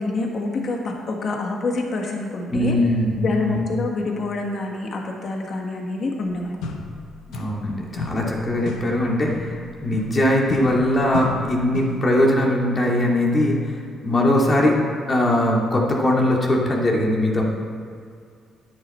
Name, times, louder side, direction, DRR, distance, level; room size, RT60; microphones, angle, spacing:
voice 1, 0.0-2.8 3.2-6.6, left 3 dB, 55° left, 1 dB, 1.4 m, -27 dB
voice 2, 2.5-3.6 7.3-13.8 14.0-14.8 15.1-17.4, left 1 dB, 35° left, -1 dB, 2.3 m, -20 dB
sound 1, 6.2-6.3 6.6-7.7 8.0-12.1, left 3 dB, 85° left, 1.1 m, -33 dB
10.0 x 9.7 x 4.4 m, 2.2 s
cardioid pair, 90°, 0 cm